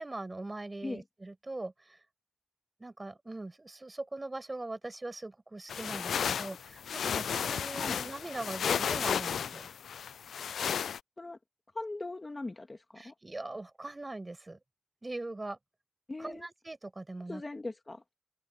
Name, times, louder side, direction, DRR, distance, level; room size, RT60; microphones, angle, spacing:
voice 1, 0.0-2.0 2.8-9.7 13.0-14.6 15.0-15.6 16.2-17.4, right 2 dB, 25° right, 7.2 m, -41 dB
sound 1, 5.7-11.0, left 8 dB, 85° left, 0.3 m, -33 dB
voice 2, 11.7-13.1 16.1-16.5 17.3-18.0, left 2 dB, 30° left, 2.1 m, -40 dB
cardioid pair, 65°, 0 cm